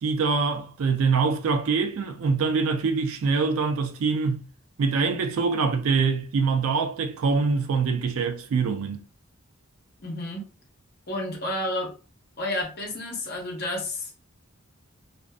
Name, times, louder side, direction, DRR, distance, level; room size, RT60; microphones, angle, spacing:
voice 1, 0.0-4.5 4.8-9.0, right 4 dB, 75° right, 0.4 m, -24 dB
voice 2, 10.0-10.5 11.1-11.9 12.4-14.2, left 1 dB, 45° left, 0.8 m, -30 dB
2.5 x 2.4 x 2.3 m
head